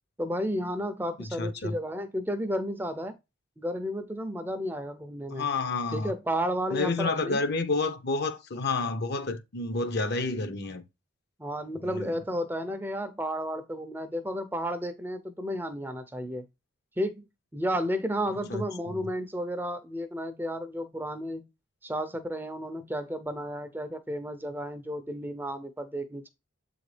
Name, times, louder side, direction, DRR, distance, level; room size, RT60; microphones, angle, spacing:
voice 1, 0.2-3.1 3.6-5.5 5.9-7.4 11.4-16.5 17.0-17.2 17.5-21.5 21.8-26.3, equal, 10° right, 0.5 m, -32 dB
voice 2, 1.2-1.8 5.3-6.1 6.7-10.8 11.8-12.2 18.5-19.1, left 3 dB, 50° left, 0.7 m, -30 dB
7.5 x 3.9 x 3.2 m
head